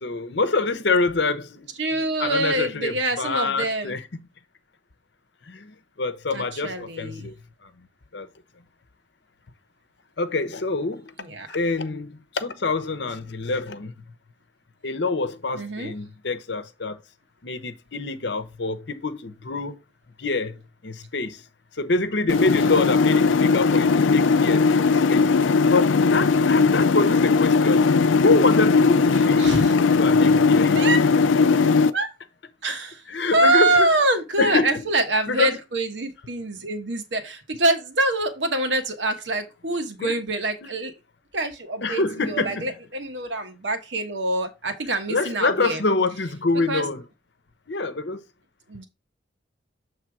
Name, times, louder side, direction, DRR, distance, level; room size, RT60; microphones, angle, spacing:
voice 1, 0.0-4.2 5.5-7.3 7.6-7.7 8.1-8.3 10.2-11.1 11.5-14.0 14.8-17.0 17.4-19.8 20.2-21.4 21.8-25.2 25.7-27.8 28.2-29.5 30.0-30.8 33.1-33.9 34.4-34.8 35.3-35.5 40.0-40.2 40.6-40.7 41.8-42.7 45.1-47.0 47.7-48.2, left 3 dB, 65° left, 0.8 m, -26 dB
voice 2, 1.8-4.0 6.3-7.3 11.2-11.5 15.5-15.9 29.1-29.7 30.7-31.0 31.9-32.1 32.6-40.9 41.3-45.8 46.7-46.8 48.7-48.9, right 2 dB, 70° right, 1.2 m, -25 dB
sound 1, 22.3-31.9, left 4 dB, 85° left, 0.4 m, -18 dB
7.4 x 3.3 x 4.7 m
head